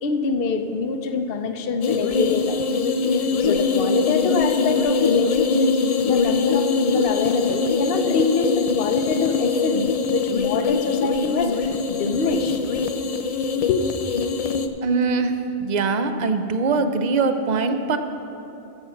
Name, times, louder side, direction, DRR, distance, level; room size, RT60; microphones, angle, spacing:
voice 1, 0.0-2.6 3.1-5.8 6.0-12.7 13.7-13.8, left 4 dB, 65° left, 7 dB, 0.9 m, -25 dB
sound 1, 1.8-14.7, left 4 dB, 50° left, 0.5 m, -22 dB
voice 2, 14.8-18.0, right 4 dB, 50° right, 8 dB, 0.8 m, -22 dB
14.0 x 7.2 x 5.7 m, 2.8 s
omnidirectional pair, 1.1 m